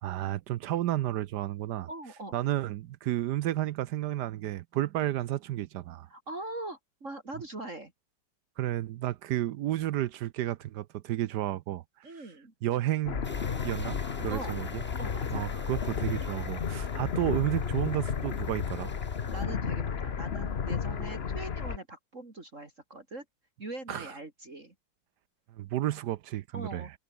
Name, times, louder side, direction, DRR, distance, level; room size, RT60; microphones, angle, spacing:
voice 1, 0.0-1.9 2.3-6.1 8.6-12.2 12.6-13.2 13.6-14.8 15.3-18.9 23.9-24.1 25.5-26.9, right 14 dB, 70° right, 1.0 m, -32 dB
voice 2, 1.9-2.3 6.1-7.9 12.0-12.5 14.3-14.5 15.0-15.5 19.3-23.2 23.6-24.7 26.5-26.9, right 2 dB, 35° right, 3.6 m, -41 dB
sound 1, 13.0-21.8, left 6 dB, 40° left, 1.1 m, -33 dB
sound 2, 13.2-19.4, left 1 dB, 5° left, 2.4 m, -50 dB
omnidirectional pair, 2.3 m